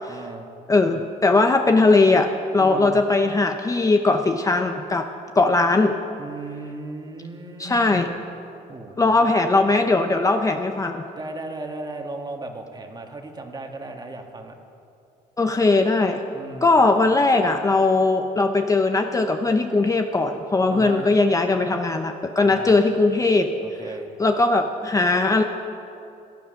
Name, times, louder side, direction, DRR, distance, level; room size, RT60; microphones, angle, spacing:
voice 1, 0.1-0.5 2.5-3.0 6.2-8.0 8.7-9.3 11.2-14.6 16.3-16.7 20.7-21.1 22.4-22.9 23.6-24.1, right 2 dB, 25° right, 4 dB, 1.6 m, -36 dB
voice 2, 0.7-5.1 5.4-6.0 7.6-8.1 9.0-11.0 15.4-16.2 16.6-23.5 24.2-25.4, left 3 dB, 20° left, 5 dB, 0.7 m, -19 dB
17.0 x 10.5 x 6.5 m, 2.7 s
cardioid pair, 110°, 17 cm